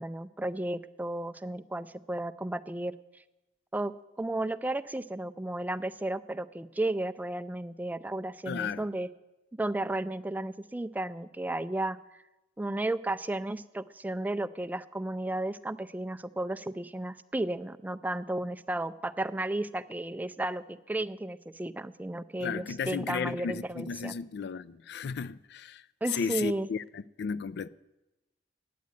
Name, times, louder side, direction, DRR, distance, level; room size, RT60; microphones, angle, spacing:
voice 1, 0.0-2.9 3.7-9.1 9.6-12.0 12.6-24.1 26.0-26.7, right 1 dB, 10° right, 0.3 m, -33 dB
voice 2, 8.5-8.9 22.4-25.8 26.1-27.7, left 6 dB, 65° left, 0.4 m, -34 dB
9.4 x 8.4 x 9.5 m
head